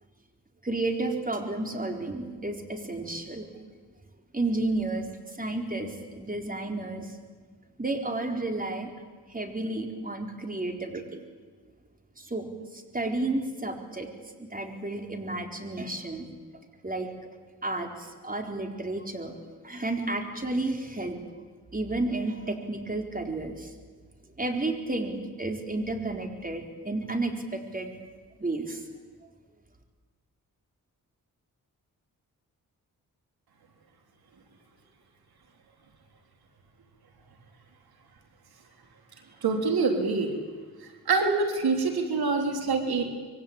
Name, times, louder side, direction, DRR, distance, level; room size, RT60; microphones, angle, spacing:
voice 1, 0.6-3.5 4.3-7.1 7.8-8.9 9.3-11.2 12.2-12.5 12.7-14.1 14.4-16.3 16.8-17.1 17.6-19.3 19.6-21.2 21.7-23.7 24.4-27.9 28.4-28.8, right 2 dB, 25° right, 4 dB, 4.2 m, -32 dB
voice 2, 39.4-40.3 41.1-43.0, right 4 dB, 90° right, 3 dB, 3.7 m, -25 dB
26.0 x 23.5 x 8.9 m, 1.5 s
cardioid pair, 75°, 36 cm